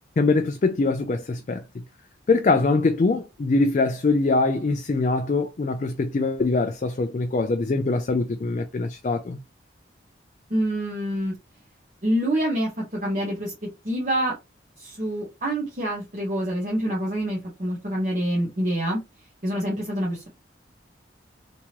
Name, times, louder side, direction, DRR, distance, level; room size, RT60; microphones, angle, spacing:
voice 1, 0.2-1.6 2.3-9.4, left 3 dB, 40° left, 0.3 m, -23 dB
voice 2, 10.5-11.3 12.0-13.5 13.8-14.3 14.8-19.0 19.4-20.3, right 1 dB, 45° right, 1.1 m, -26 dB
3.5 x 2.9 x 2.9 m
head